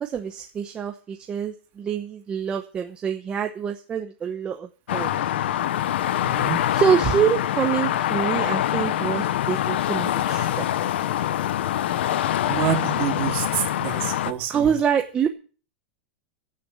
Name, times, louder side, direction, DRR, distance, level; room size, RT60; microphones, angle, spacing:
voice 1, 0.0-5.1 6.7-10.6 14.5-15.3, right 8 dB, 15° right, 4 dB, 0.9 m, -25 dB
sound 1, 4.9-14.3, left 12 dB, 80° left, 0.9 m, -24 dB
voice 2, 6.2-6.6 12.5-14.7, right 8 dB, 35° right, 4 dB, 2.8 m, -27 dB
15.5 x 6.8 x 8.4 m, 0.39 s
supercardioid pair, 170°, 6 cm